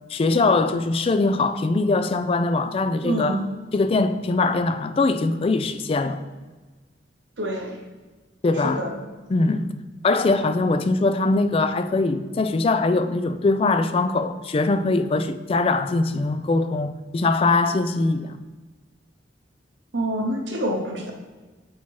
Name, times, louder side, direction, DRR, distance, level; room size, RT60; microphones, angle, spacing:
voice 1, 0.1-3.4 3.7-6.2 8.4-8.9 9.3-9.7 10.0-18.4, left 3 dB, 30° left, 0.3 m, -22 dB
voice 2, 3.0-3.4 7.4-7.8 8.6-9.0 19.9-21.1, right 1 dB, 85° right, 0.9 m, -26 dB
7.2 x 2.9 x 4.5 m
head